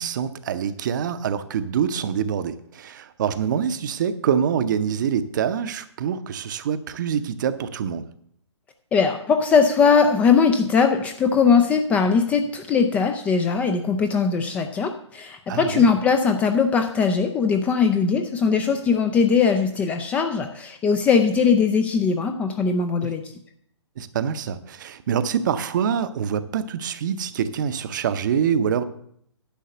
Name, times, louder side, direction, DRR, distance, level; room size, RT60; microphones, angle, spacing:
voice 1, 0.0-8.1 15.5-15.9 23.0-23.1 24.0-28.8, right 8 dB, 40° right, 12 dB, 0.7 m, -25 dB
voice 2, 8.9-23.2, left 5 dB, 10° left, 6 dB, 0.3 m, -20 dB
10.5 x 5.5 x 6.7 m, 0.68 s
figure-of-eight pair, 130°, 15 cm